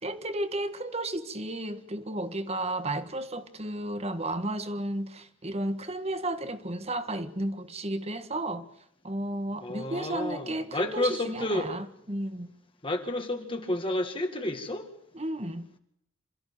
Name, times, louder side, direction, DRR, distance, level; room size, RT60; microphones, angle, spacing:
voice 1, 0.0-8.7 9.0-12.5 15.1-15.7, right 1 dB, 30° right, 1.7 m, -33 dB
voice 2, 9.6-11.7 12.8-14.9, left 1 dB, 25° left, 2.0 m, -30 dB
28.0 x 14.5 x 8.8 m
head